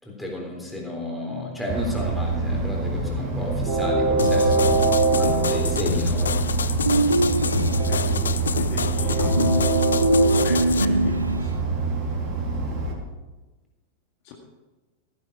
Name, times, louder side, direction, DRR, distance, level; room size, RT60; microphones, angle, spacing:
voice 1, 0.0-6.5 9.2-9.3, left 2 dB, 5° left, -2 dB, 3.7 m, -32 dB
Train, 1.7-12.9, right 3 dB, 35° right, 3.1 m, -24 dB
sound 1, 4.2-10.8, left 6 dB, 70° left, 0.4 m, -27 dB
sound 2, 6.9-8.1 9.4-11.6, right 2 dB, 85° right, 0.3 m, -23 dB
voice 2, 7.9-9.6 10.4-11.6 14.2-14.3, left 5 dB, 45° left, 0 dB, 2.0 m, -38 dB
15.5 x 10.5 x 4.9 m, 1.2 s
figure-of-eight pair, 90°, 0 cm